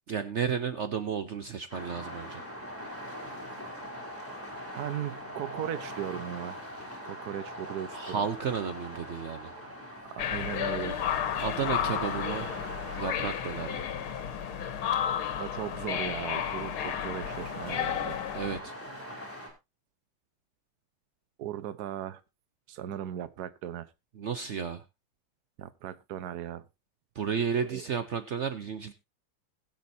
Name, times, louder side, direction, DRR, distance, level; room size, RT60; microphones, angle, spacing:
voice 1, 0.1-2.4 7.9-9.5 11.4-12.5 13.0-13.9 18.3-18.7 24.2-24.8 27.1-28.9, right 7 dB, 80° right, 0.6 m, -32 dB
sound 1, 1.7-19.5, equal, 5° left, 3.7 m, -42 dB
voice 2, 4.7-6.6 7.0-8.2 10.0-11.0 15.4-18.2 21.4-22.2 22.7-23.9 25.6-26.6 27.6-27.8, right 10 dB, 60° right, 1.2 m, -37 dB
sound 2, 10.2-18.6, left 9 dB, 90° left, 1.9 m, -32 dB
20.5 x 7.4 x 2.7 m
omnidirectional pair, 2.3 m